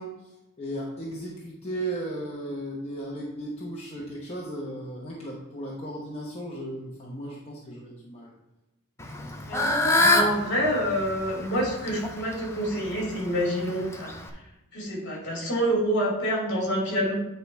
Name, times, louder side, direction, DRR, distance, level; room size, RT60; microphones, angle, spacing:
voice 1, 0.0-8.3 9.0-9.4, right 1 dB, 30° left, -4 dB, 0.9 m, -36 dB
Fowl / Bird, 9.0-14.3, left 2 dB, 10° left, 0.6 m, -27 dB
voice 2, 9.9-14.1 14.7-17.1, equal, 55° left, -2 dB, 2.5 m, -27 dB
9.4 x 3.5 x 4.5 m, 0.95 s
head